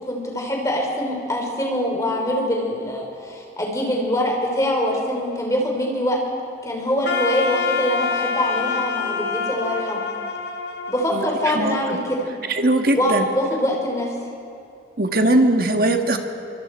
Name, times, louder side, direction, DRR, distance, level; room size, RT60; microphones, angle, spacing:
voice 1, 0.0-6.2 6.6-10.0 10.9-12.3 12.9-14.1, equal, 15° left, 0 dB, 3.4 m, -24 dB
Wind instrument woodwind instrument, 7.0-12.1, left 5 dB, 70° left, 1.6 m, -26 dB
voice 2, 11.5-12.0 12.5-13.3 15.0-16.2, right 1 dB, 50° right, 5 dB, 1.5 m, -19 dB
25.5 x 24.0 x 4.5 m, 2.5 s
head